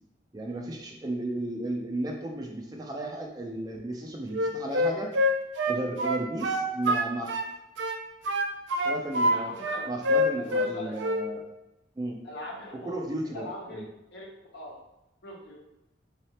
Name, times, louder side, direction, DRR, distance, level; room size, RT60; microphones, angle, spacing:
voice 1, 0.3-5.1 5.7-7.4 8.8-9.5 9.9-11.5 12.0-12.2 12.8-13.4 13.7-13.8, right 1 dB, 20° right, 1 dB, 0.4 m, -34 dB
Wind instrument woodwind instrument, 4.3-7.5 7.8-9.4 9.6-10.7 11.0-11.3, left 1 dB, 80° right, 0.4 m, -26 dB
voice 2, 9.2-9.9 10.4-11.0 12.2-13.0 13.3-13.8 14.1-14.3 14.5-14.8 15.2-15.6, left 1 dB, 60° left, -2 dB, 1.0 m, -40 dB
3.9 x 3.1 x 2.9 m, 0.92 s
head